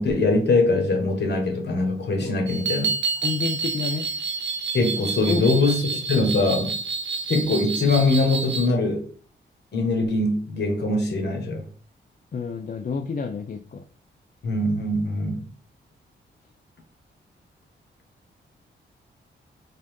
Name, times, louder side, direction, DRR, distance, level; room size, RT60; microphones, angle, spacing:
voice 1, 0.0-2.9 4.7-6.8 7.3-9.0 9.7-11.6 14.4-15.5, left 2 dB, 60° left, 1.5 m, -22 dB
sound 1, 2.5-8.7, right 4 dB, 70° right, 0.9 m, -29 dB
voice 2, 3.2-4.1 5.3-5.8 12.3-13.8, left 5 dB, 45° left, 0.5 m, -30 dB
4.1 x 3.6 x 3.6 m
cardioid pair, 90°, 20 cm